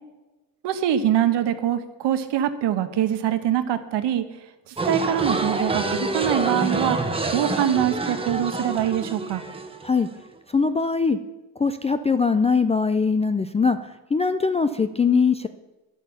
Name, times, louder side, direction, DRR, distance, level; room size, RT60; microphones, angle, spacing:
voice 1, 0.6-4.2 4.7-9.4, right 10 dB, 60° right, 10 dB, 1.2 m, -24 dB
sound 1, 4.8-10.2, right 3 dB, 10° right, 1.1 m, -27 dB
voice 2, 10.5-11.2 11.6-13.8 14.1-15.5, left 5 dB, 15° left, 9 dB, 0.3 m, -21 dB
11.0 x 8.4 x 7.0 m, 1.1 s
cardioid pair, 110°, 46 cm